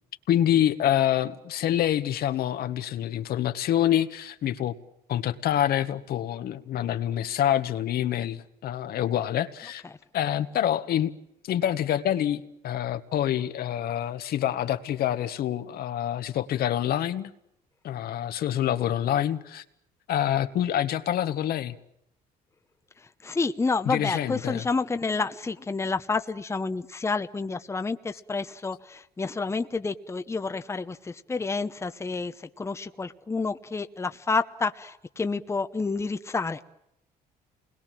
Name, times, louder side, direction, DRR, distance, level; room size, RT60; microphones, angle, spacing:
voice 1, 0.3-4.7 5.1-9.8 10.1-11.1 11.4-17.3 17.8-19.6 20.1-21.7 23.8-24.7, left 11 dB, 65° left, 9 dB, 1.6 m, -26 dB
voice 2, 23.2-36.6, left 4 dB, 15° left, 9 dB, 1.0 m, -29 dB
28.0 x 21.0 x 7.6 m, 0.78 s
cardioid pair, 110°, 17 cm